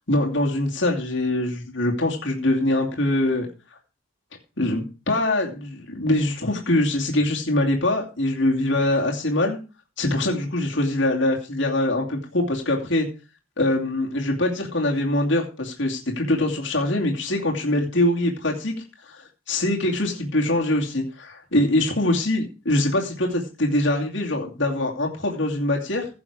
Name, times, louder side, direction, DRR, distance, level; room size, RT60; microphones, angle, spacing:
voice 1, 0.0-3.5 4.6-9.6 10.0-13.1 13.6-18.7 19.1-26.1, left 1 dB, 55° left, 0 dB, 2.6 m, -23 dB
16.0 x 6.9 x 4.8 m, 0.32 s
head